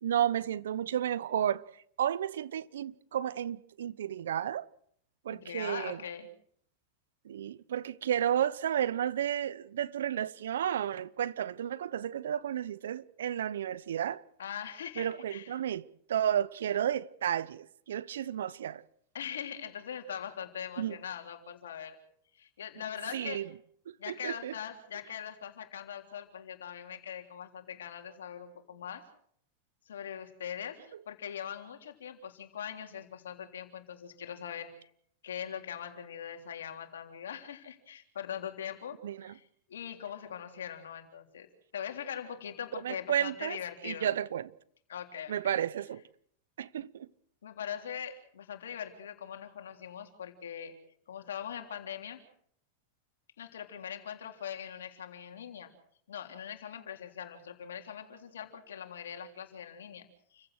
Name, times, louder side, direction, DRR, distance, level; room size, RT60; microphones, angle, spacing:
voice 1, 0.0-1.7 2.0-4.7 5.2-6.0 7.2-14.2 15.0-15.8 16.1-18.8 20.8-21.0 23.1-23.5 23.9-24.5 39.0-39.3 42.7-43.6 43.8-44.5 45.3-46.0 46.6-47.1, right 10 dB, 75° right, 0.8 m, -32 dB
voice 2, 5.3-6.3 14.4-15.5 19.1-22.0 22.3-23.4 24.0-29.0 29.9-30.8 31.1-34.9 35.2-41.5 41.7-44.1 44.9-45.5 47.4-50.7 51.1-52.2 53.4-55.7 56.1-60.5, left 8 dB, 80° left, 3.5 m, -41 dB
29.0 x 15.5 x 6.5 m
hypercardioid pair, 100°, 0 cm